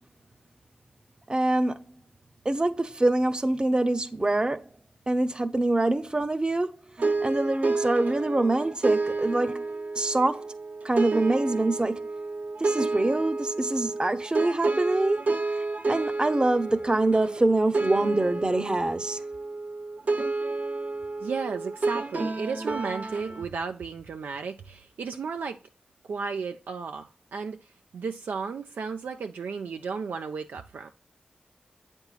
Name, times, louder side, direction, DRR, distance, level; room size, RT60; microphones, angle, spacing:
voice 1, 1.3-1.9 2.4-4.7 5.1-6.8 7.2-9.7 10.0-10.5 10.8-12.1 12.6-19.2, right 2 dB, 30° right, 0.7 m, -25 dB
sound 1, 7.0-23.4, right 3 dB, 60° right, 0.8 m, -30 dB
voice 2, 21.2-25.6 26.1-27.6 27.9-30.9, right 5 dB, 85° right, 0.4 m, -34 dB
8.0 x 5.3 x 2.3 m
cardioid pair, 45°, 3 cm